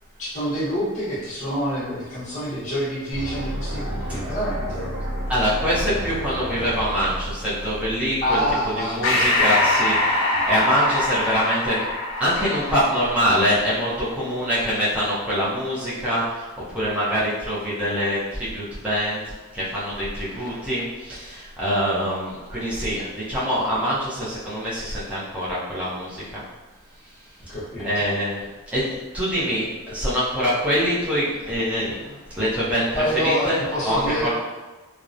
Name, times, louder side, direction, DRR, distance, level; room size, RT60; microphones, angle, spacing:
voice 1, 0.2-4.9 8.2-10.0 10.3-10.4 27.5-28.1 32.9-34.3, equal, 35° left, -11 dB, 0.8 m, -27 dB
sound 1, 3.1-9.1, equal, 65° right, 0.5 m, -31 dB
voice 2, 5.3-8.4 8.8-11.8 12.2-19.2 19.5-26.4 27.8-28.4 28.7-34.3, equal, 5° right, -10 dB, 0.5 m, -24 dB
Breathing, 9.0-13.9, left 2 dB, 60° left, 0.6 m, -23 dB
2.8 x 2.0 x 2.4 m, 1.2 s
head